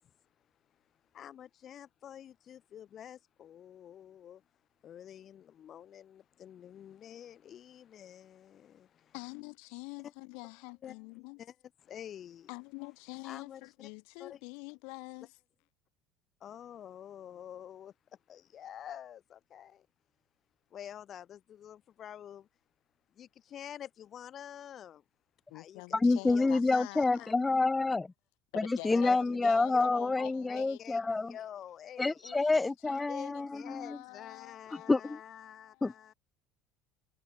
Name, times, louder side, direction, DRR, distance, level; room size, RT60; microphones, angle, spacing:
voice 1, 1.1-4.4 4.8-9.1 10.0-10.1 10.8-11.0 11.4-11.5 11.8-12.5 13.2-13.9 14.2-14.4 16.4-17.9 18.3-19.9 20.7-22.5 23.1-25.0 25.5-26.8 27.2-27.3 28.9-32.3 33.1-36.1, left 10 dB, 45° left, 5.2 m, -48 dB
voice 2, 9.1-11.4 12.5-15.3 25.5-27.3 28.5-31.4 32.2-32.6 32.8-35.2 35.5-36.0, left 37 dB, 75° left, 6.0 m, -47 dB
voice 3, 25.9-28.1 28.6-31.3 32.0-33.5 33.9-34.0 34.9-35.2 35.8-35.9, left 3 dB, 15° left, 0.5 m, -28 dB
supercardioid pair, 100°, 0 cm